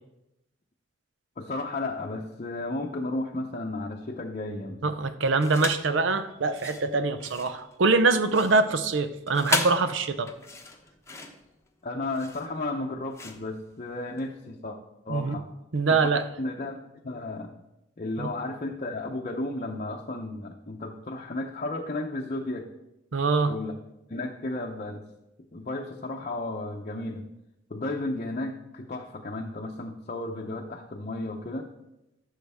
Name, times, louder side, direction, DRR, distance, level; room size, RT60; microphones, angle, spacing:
voice 1, 1.4-4.8 11.8-14.8 15.1-15.5 15.9-16.8 17.0-17.5 18.0-22.7 23.5-23.7 24.1-25.0 25.5-27.2 27.7-31.7, left 2 dB, 40° left, 1 dB, 0.7 m, -33 dB
voice 2, 4.8-10.3 15.1-15.4 15.7-16.2 18.2-18.3 23.1-23.5, right 3 dB, 85° right, 10 dB, 0.7 m, -24 dB
sound 1, 5.4-5.9 6.4-14.3, left 4 dB, 15° left, 0.9 m, -35 dB
13.5 x 6.4 x 3.5 m, 0.92 s
head